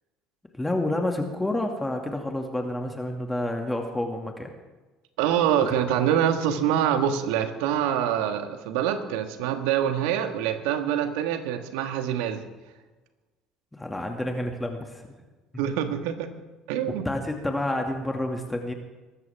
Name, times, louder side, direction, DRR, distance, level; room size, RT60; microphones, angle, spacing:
voice 1, 0.5-4.5 5.9-6.0 13.7-15.2 17.0-18.7, left 1 dB, 10° left, 3 dB, 2.2 m, -29 dB
voice 2, 5.2-12.4 15.6-16.3 16.7-17.1, right 9 dB, 70° right, 8 dB, 1.6 m, -25 dB
23.0 x 13.0 x 3.6 m, 1.2 s
hypercardioid pair, 65°, 0 cm